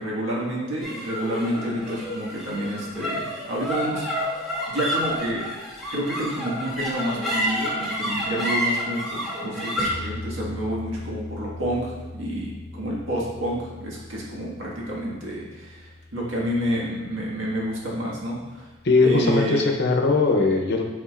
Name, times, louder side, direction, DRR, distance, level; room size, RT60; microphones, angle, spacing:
voice 1, 0.0-4.1 4.7-5.4 5.9-18.7 19.0-19.7, equal, 70° right, -5 dB, 1.8 m, -29 dB
sound 1, 0.8-17.4, equal, ahead, 1.4 m, -31 dB
voice 2, 18.8-20.8, left 3 dB, 55° left, 3 dB, 0.7 m, -20 dB
8.7 x 4.9 x 2.5 m, 1.2 s
head